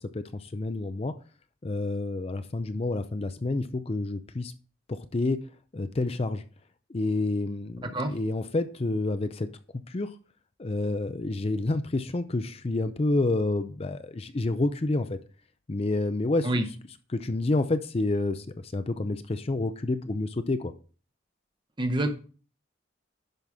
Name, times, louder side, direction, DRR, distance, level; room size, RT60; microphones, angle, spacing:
voice 1, 0.0-1.1 1.6-4.5 4.9-5.4 5.7-6.4 6.9-9.5 9.9-10.1 10.6-15.2 15.7-16.7 17.1-20.7, left 2 dB, 30° left, 0.4 m, -29 dB
voice 2, 21.8-22.1, right 1 dB, 25° right, 0.8 m, -26 dB
11.0 x 5.8 x 3.5 m
head